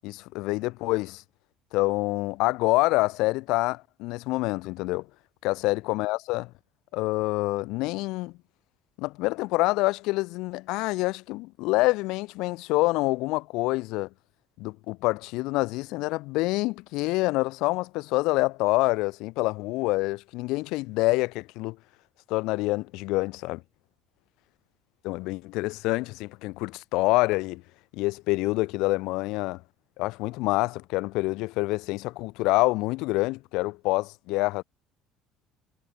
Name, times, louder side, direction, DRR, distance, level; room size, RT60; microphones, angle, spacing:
voice 1, 0.0-1.2 1.7-5.0 5.4-6.5 6.9-8.3 9.0-14.1 14.6-21.8 22.3-23.6 25.0-27.6 27.9-29.6 30.0-34.6, left 22 dB, 75° left, 3.2 m, -26 dB
cardioid pair, 115°, 0 cm